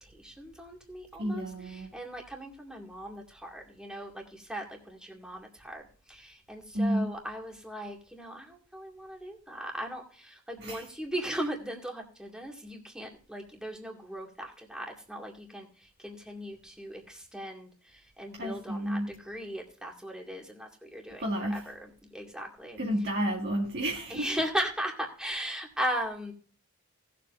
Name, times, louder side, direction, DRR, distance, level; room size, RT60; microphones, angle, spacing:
voice 1, 0.0-21.2 21.5-22.8 24.1-26.3, equal, 5° right, 2.2 m, -38 dB
voice 2, 1.2-1.9 6.7-7.2 10.6-10.8 18.4-19.1 21.2-21.7 22.8-24.3, equal, 50° right, 2.0 m, -31 dB
19.0 x 7.5 x 2.6 m
head